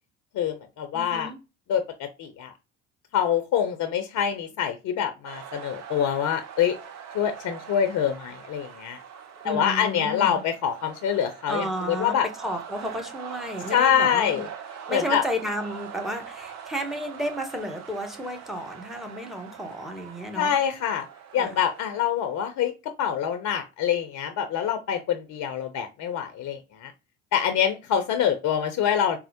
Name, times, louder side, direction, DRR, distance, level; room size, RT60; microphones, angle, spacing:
voice 1, 0.3-1.3 1.7-2.5 3.1-6.8 7.1-9.0 9.4-12.3 13.7-14.5 14.9-15.2 20.3-21.0 21.3-22.7 23.0-26.9 27.3-29.2, left 9 dB, 45° left, 0.6 m, -25 dB
voice 2, 0.9-1.4 9.4-10.4 11.5-14.4 14.9-20.5 21.4-21.5, equal, ahead, 0.9 m, -32 dB
sound 1, 5.2-22.0, right 8 dB, 45° right, 0.6 m, -42 dB
4.1 x 2.0 x 2.7 m
hypercardioid pair, 55°, 38 cm